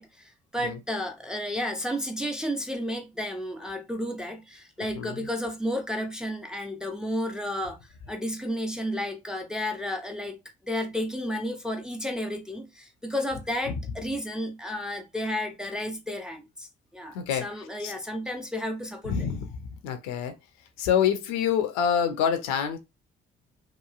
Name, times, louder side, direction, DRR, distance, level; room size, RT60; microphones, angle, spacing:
voice 1, 0.0-7.8 8.1-10.4 10.6-19.2, equal, ahead, 0.5 m, -32 dB
voice 2, 4.8-5.3 13.6-14.0 17.1-17.9 19.0-20.4 20.8-22.8, left 8 dB, 65° left, 0.6 m, -27 dB
3.0 x 2.3 x 2.3 m
figure-of-eight pair, 45°, 29 cm